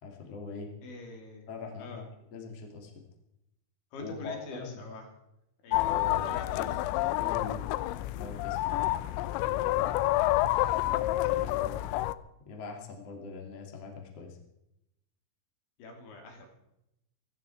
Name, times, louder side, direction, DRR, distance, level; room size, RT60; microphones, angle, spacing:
voice 1, 0.0-0.7 1.5-2.9 4.0-4.8 5.8-6.8 7.2-7.6 8.1-8.9 11.2-12.0 12.5-14.4, left 4 dB, 35° left, 1 dB, 2.9 m, -42 dB
voice 2, 0.8-1.5 1.8-2.0 3.9-5.1 5.6-6.8 10.2-10.4 11.1-11.7 15.8-16.5, left 2 dB, 65° left, 2 dB, 5.3 m, -46 dB
sound 1, 5.7-12.1, left 16 dB, 85° left, 3.3 m, -28 dB
17.0 x 16.5 x 4.7 m, 0.83 s
omnidirectional pair, 6.0 m